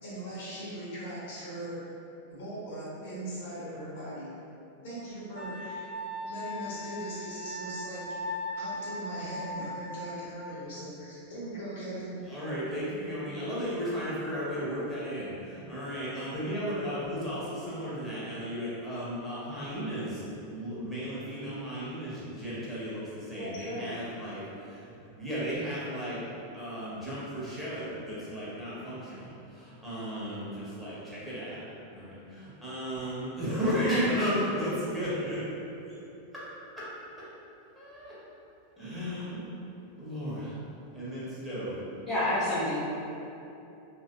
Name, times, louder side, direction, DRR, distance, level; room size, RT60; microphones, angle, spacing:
voice 1, 0.0-1.8 2.3-4.3 4.8-5.9 6.2-8.0 8.5-12.2 23.4-24.0, right 1 dB, 60° left, -9 dB, 1.0 m, -39 dB
Wind instrument woodwind instrument, 5.3-10.3, left 1 dB, 75° left, 0.7 m, -38 dB
voice 2, 12.3-26.3 26.5-31.6 31.9-35.4 36.8-36.9 37.7-38.1 38.8-39.4 40.0-40.6 40.9-41.8, equal, ahead, -11 dB, 1.0 m, -34 dB
voice 3, 42.1-42.8, left 1 dB, 20° left, -10 dB, 0.5 m, -28 dB
3.1 x 2.6 x 2.3 m, 2.9 s
figure-of-eight pair, 90°, 0 cm